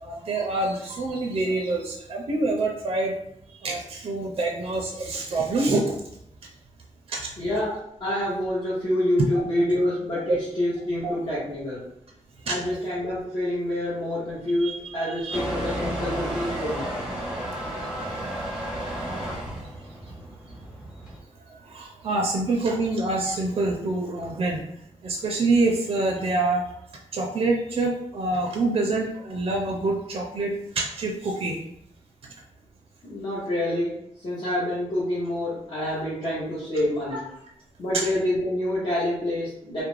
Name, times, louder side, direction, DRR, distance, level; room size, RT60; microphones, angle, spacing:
voice 1, 0.0-3.1 3.6-5.8 7.1-7.3 9.6-9.7 10.3-10.4 11.0-11.1 12.5-12.6 14.6-15.4 21.7-24.6 25.0-26.6 27.1-30.5 30.8-31.6 37.9-38.0, right 2 dB, 50° right, 0 dB, 0.4 m, -26 dB
voice 2, 7.4-11.8 12.4-17.0 33.0-37.2 37.8-39.8, left 1 dB, 45° left, -9 dB, 0.8 m, -27 dB
Motor vehicle (road) / Engine starting / Accelerating revving vroom, 15.3-21.2, right 1 dB, 5° right, 0.6 m, -32 dB
2.3 x 2.0 x 3.1 m, 0.74 s
wide cardioid pair, 150°, 12 cm